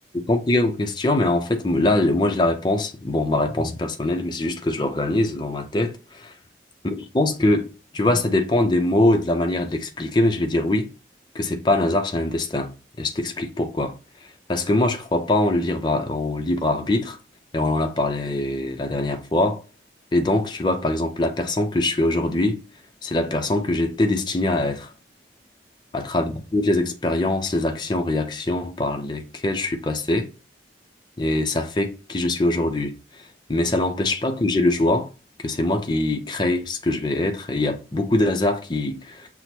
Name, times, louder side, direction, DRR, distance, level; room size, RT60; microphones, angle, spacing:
voice 1, 0.1-6.3 6.8-7.7 7.9-10.9 11.3-12.7 13.0-13.9 14.5-17.2 17.5-19.6 20.1-22.6 23.0-24.9 25.9-30.3 31.2-33.0 33.5-35.1 35.4-39.3, left 2 dB, 25° left, 0.5 m, -23 dB
5.9 x 2.0 x 2.8 m
head